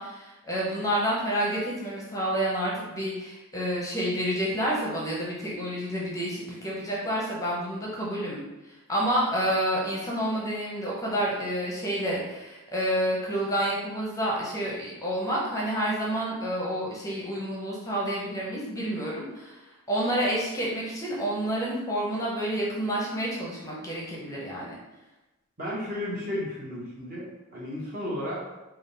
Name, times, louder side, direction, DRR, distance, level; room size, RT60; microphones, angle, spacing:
voice 1, 0.0-24.7, right 1 dB, 15° left, -5 dB, 0.7 m, -29 dB
voice 2, 25.6-27.3 27.5-28.4, left 1 dB, 40° right, -5 dB, 1.1 m, -33 dB
3.7 x 2.3 x 3.9 m, 1.0 s
head